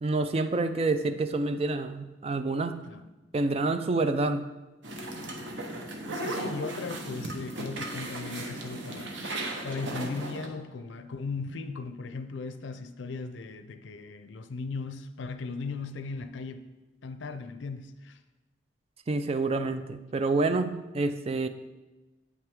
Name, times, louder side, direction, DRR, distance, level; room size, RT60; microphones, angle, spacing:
voice 1, 0.0-2.8 3.3-4.5 19.1-21.5, right 3 dB, 35° right, 10 dB, 0.4 m, -28 dB
sound 1, 4.8-10.5, right 1 dB, 85° right, 1.0 m, -36 dB
voice 2, 6.1-16.7 17.0-18.2, left 4 dB, 85° left, 9 dB, 0.5 m, -37 dB
8.2 x 5.7 x 3.6 m, 1.1 s
head